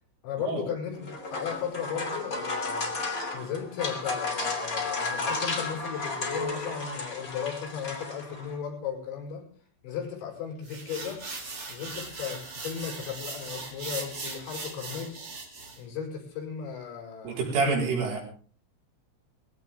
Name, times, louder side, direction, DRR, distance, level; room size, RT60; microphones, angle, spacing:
voice 1, 0.2-3.0 3.3-9.5 9.8-11.2 11.7-15.3 15.8-17.4, left 8 dB, 70° left, -1 dB, 7.8 m, -36 dB
sound 1, 0.9-8.6, left 3 dB, 25° left, 2.1 m, -33 dB
sound 2, 10.6-15.8, right 3 dB, 35° right, 2.7 m, -39 dB
voice 2, 17.3-18.2, right 4 dB, 80° right, -1 dB, 7.2 m, -27 dB
21.0 x 16.5 x 3.6 m, 0.43 s
omnidirectional pair, 5.6 m